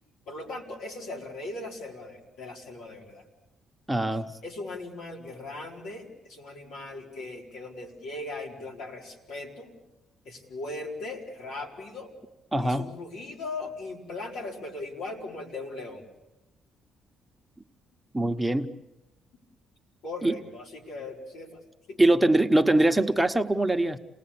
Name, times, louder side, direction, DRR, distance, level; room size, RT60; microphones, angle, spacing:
voice 1, 0.3-3.2 4.1-9.8 10.2-12.1 12.6-16.0 20.0-21.6 21.9-22.2, left 2 dB, 85° left, 0 dB, 4.5 m, -39 dB
voice 2, 3.9-4.3 12.5-12.9 18.1-18.7 20.2-20.3 22.0-24.0, right 1 dB, 5° right, 6 dB, 1.0 m, -22 dB
28.0 x 18.5 x 8.6 m, 0.97 s
cardioid pair, 90°, 0 cm